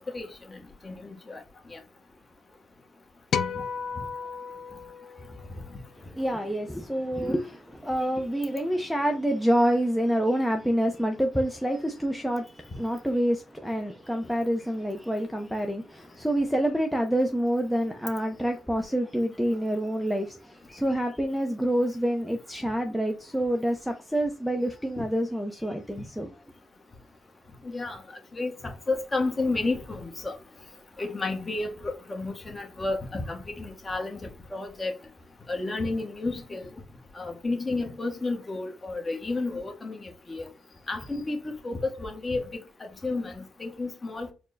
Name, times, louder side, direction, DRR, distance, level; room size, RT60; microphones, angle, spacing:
voice 1, 0.1-1.4 1.7-1.8 27.6-28.0 28.3-30.3 31.0-34.2 34.5-34.9 35.5-36.7 37.1-40.5 40.9-42.6 43.0-44.3, left 3 dB, 25° left, 1.0 m, -31 dB
sound 1, 3.3-5.8, left 6 dB, 60° left, 0.4 m, -33 dB
voice 2, 6.0-26.3, equal, ahead, 0.5 m, -27 dB
4.4 x 2.1 x 3.8 m
cardioid pair, 115°, 0 cm